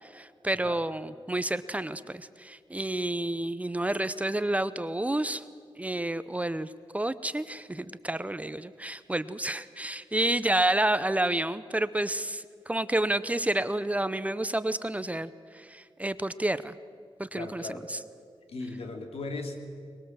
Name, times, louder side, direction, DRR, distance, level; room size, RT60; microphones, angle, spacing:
voice 1, 0.0-5.4 5.8-16.7 17.2-18.0, right 1 dB, 15° right, 14 dB, 0.6 m, -30 dB
voice 2, 17.4-17.9 18.5-19.6, left 3 dB, 85° left, 4 dB, 2.8 m, -37 dB
22.5 x 21.5 x 7.4 m, 2.1 s
wide cardioid pair, 135°, 10 cm